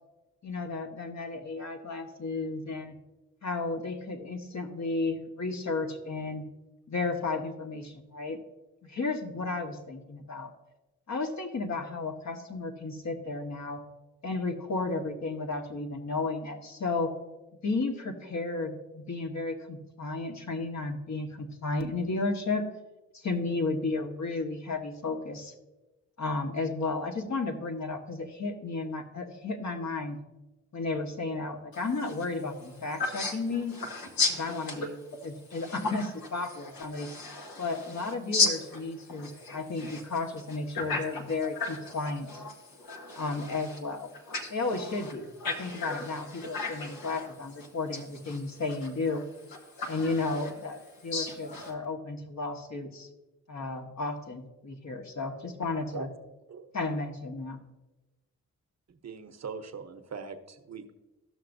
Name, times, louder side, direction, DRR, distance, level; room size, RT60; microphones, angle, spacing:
voice 1, 0.4-3.0 3.4-6.4 6.9-8.4 8.8-10.5 11.1-13.8 14.2-17.1 17.6-22.7 23.1-25.5 26.2-30.2 30.7-33.8 34.4-35.0 35.2-37.1 37.6-42.4 43.2-44.1 44.5-45.3 45.6-49.2 49.9-53.1 53.5-56.1 56.7-57.6, left 3 dB, 50° left, 3 dB, 1.5 m, -33 dB
voice 2, 33.0-34.9 35.5-36.1 36.6-38.8 39.1-40.0 40.7-41.3 41.5-41.9 42.3-43.8 44.3-45.1 45.4-47.3 47.9-48.0 48.3-48.4 49.8-50.5 51.1-51.7, left 4 dB, 75° left, 2 dB, 1.6 m, -34 dB
voice 3, 59.0-60.9, right 5 dB, 50° right, 7 dB, 0.9 m, -41 dB
14.5 x 6.0 x 2.6 m, 1.1 s
supercardioid pair, 50°, 35 cm